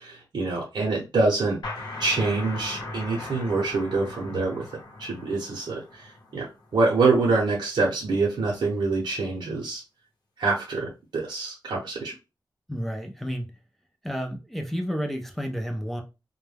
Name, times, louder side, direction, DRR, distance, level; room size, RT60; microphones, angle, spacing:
voice 1, 0.0-1.6 2.0-4.7 5.0-6.5 6.7-9.8 10.4-12.1, right 3 dB, 70° right, 0.7 m, -25 dB
sound 1, 1.6-7.0, left 2 dB, 60° left, 0.8 m, -39 dB
voice 2, 12.7-13.6 14.0-16.0, equal, ahead, 0.4 m, -31 dB
2.2 x 2.1 x 3.2 m
wide cardioid pair, 180°, 8 cm